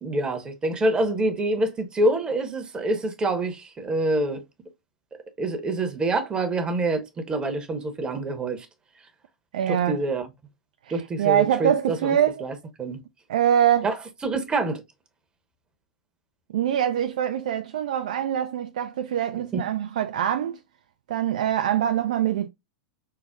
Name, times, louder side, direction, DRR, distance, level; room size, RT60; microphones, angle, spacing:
voice 1, 0.0-4.4 5.4-8.7 9.7-10.3 10.9-12.2 12.4-13.0 13.8-14.0 14.2-14.8 19.5-19.6, right 2 dB, 20° right, 0.8 m, -26 dB
voice 2, 9.5-10.0 10.9-12.5 13.3-13.9 16.5-20.6 21.1-22.5, right 10 dB, 65° right, 0.3 m, -24 dB
5.6 x 2.0 x 2.3 m
figure-of-eight pair, 95°, 4 cm